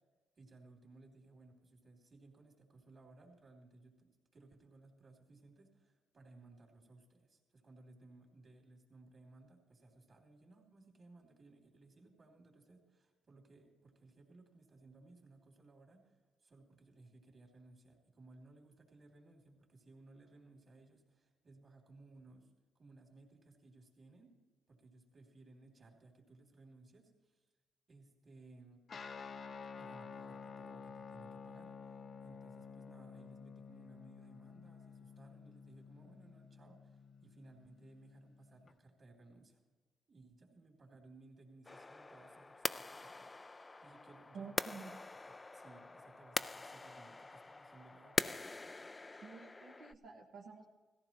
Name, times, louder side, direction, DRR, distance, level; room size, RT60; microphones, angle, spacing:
voice 1, 0.4-16.2 16.4-24.4 24.7-27.4 27.9-28.9 29.8-39.6 40.1-44.8 45.2-48.4, right 2 dB, 40° right, 2 dB, 3.1 m, -61 dB
Guitar, 28.9-38.7, left 5 dB, 45° left, 0.7 m, -51 dB
sound 1, 41.6-49.9, left 3 dB, 20° left, 0.3 m, -43 dB
voice 2, 44.3-45.0 49.2-50.7, right 5 dB, 70° right, -2 dB, 1.3 m, -50 dB
18.0 x 14.5 x 3.0 m, 1.3 s
cardioid pair, 90°, 0 cm